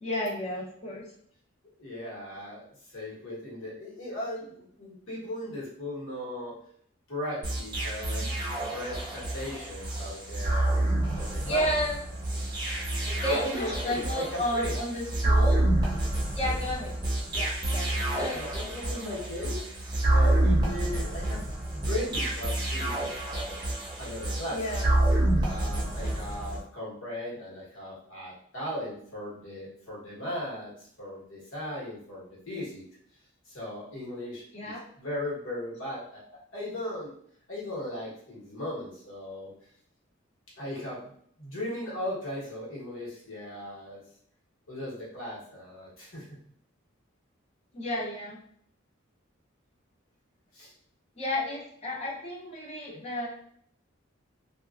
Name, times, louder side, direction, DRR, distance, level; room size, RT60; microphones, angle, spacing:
voice 1, 0.0-1.1 11.4-12.0 13.2-15.6 16.3-17.0 17.3-18.4 24.5-24.9 34.5-34.8 47.7-48.4 51.2-53.3, left 1 dB, 30° left, -3 dB, 0.6 m, -32 dB
voice 2, 1.8-2.6 2.9-6.6 7.1-8.3 8.7-10.7 11.1-11.7 12.6-12.7 13.0-14.8 18.1-23.6 24.0-24.9 25.4-32.8 33.5-36.2 36.5-37.1 37.5-39.5 40.6-41.1 41.4-44.0 44.7-46.3 50.5-50.7, left 1 dB, 85° left, -5 dB, 1.1 m, -37 dB
sound 1, 7.4-26.6, right 1 dB, 20° right, 0.6 m, -28 dB
2.8 x 2.3 x 2.4 m, 0.65 s
head